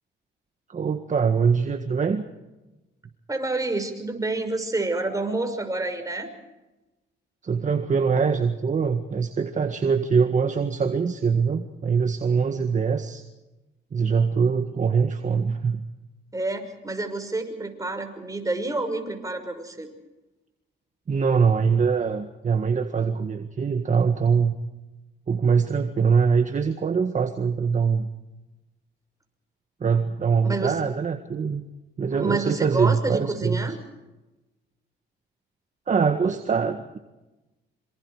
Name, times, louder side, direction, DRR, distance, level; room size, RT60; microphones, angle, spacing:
voice 1, 0.7-2.2 7.4-13.2 13.9-15.8 21.1-24.5 25.3-28.1 29.8-31.6 32.0-33.8 35.9-37.0, right 5 dB, 40° right, 7 dB, 1.7 m, -23 dB
voice 2, 3.3-6.3 16.3-19.9 30.4-30.8 32.1-33.8, right 2 dB, 15° right, 5 dB, 6.1 m, -28 dB
26.5 x 26.0 x 5.0 m, 1.1 s
cardioid pair, 90°, 20 cm